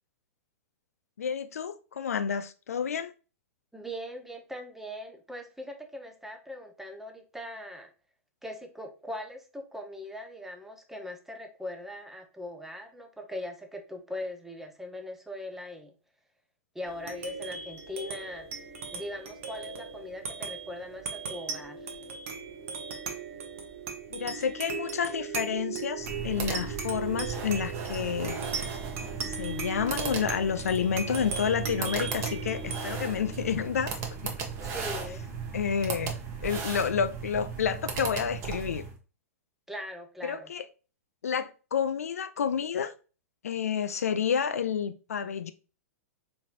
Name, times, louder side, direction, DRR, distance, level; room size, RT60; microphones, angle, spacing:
voice 1, 1.2-3.1 24.1-28.4 29.2-33.9 34.2-34.3 35.5-36.1 36.4-38.8 40.2-40.7 41.2-42.9 43.4-45.5, left 7 dB, 75° left, 0.4 m, -30 dB
voice 2, 3.7-7.9 8.4-15.9 16.7-18.5 18.9-22.0 34.6-35.2 39.7-40.5, left 1 dB, 5° right, 0.6 m, -40 dB
sound 1, 16.8-35.7, right 5 dB, 60° right, 0.9 m, -38 dB
sound 2, 25.9-39.0, right 5 dB, 35° right, 0.9 m, -36 dB
4.1 x 3.0 x 2.5 m
figure-of-eight pair, 105°, 8 cm